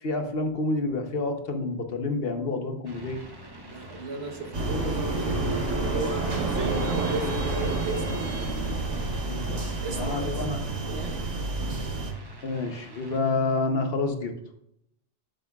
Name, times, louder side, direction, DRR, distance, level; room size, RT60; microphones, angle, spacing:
voice 1, 0.0-3.2 9.3-10.6 12.4-14.3, left 3 dB, 55° left, 5 dB, 1.1 m, -29 dB
sound 1, 2.8-13.2, left 1 dB, 20° right, 0.9 m, -45 dB
voice 2, 3.7-8.5 9.8-10.4 10.8-11.3, right 3 dB, 60° right, 4 dB, 1.3 m, -35 dB
sound 2, 4.5-12.1, right 2 dB, 90° right, 1.7 m, -29 dB
11.5 x 6.6 x 2.3 m, 0.75 s
omnidirectional pair, 1.2 m